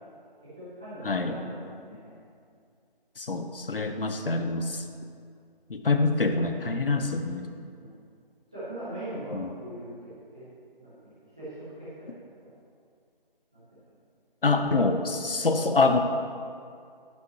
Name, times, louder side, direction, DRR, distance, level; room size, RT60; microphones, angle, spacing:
voice 1, 0.6-2.2 7.8-7.9 8.5-10.5 10.8-12.5 13.5-13.8, right 1 dB, 5° right, -15 dB, 0.8 m, -41 dB
voice 2, 3.2-4.8 5.7-7.5 9.3-9.5 14.4-16.0, left 3 dB, 70° left, 6 dB, 0.9 m, -25 dB
11.0 x 10.0 x 3.0 m, 2.3 s
figure-of-eight pair, 170°, 29 cm